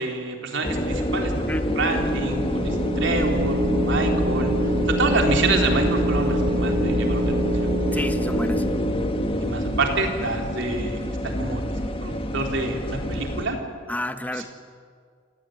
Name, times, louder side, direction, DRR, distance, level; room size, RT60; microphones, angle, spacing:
voice 1, 0.0-1.5 1.8-4.5 4.9-7.3 7.6-8.0 9.4-11.6 12.0-13.6 14.3-14.5, right 3 dB, 60° right, 2 dB, 4.0 m, -27 dB
sound 1, 0.6-13.5, equal, 25° left, 1.8 m, -27 dB
sound 2, 1.7-9.5, equal, 30° right, 1.8 m, -26 dB
voice 2, 7.9-8.6 13.9-14.5, left 1 dB, 10° left, 8 dB, 1.3 m, -29 dB
29.0 x 17.5 x 9.4 m, 2.1 s
head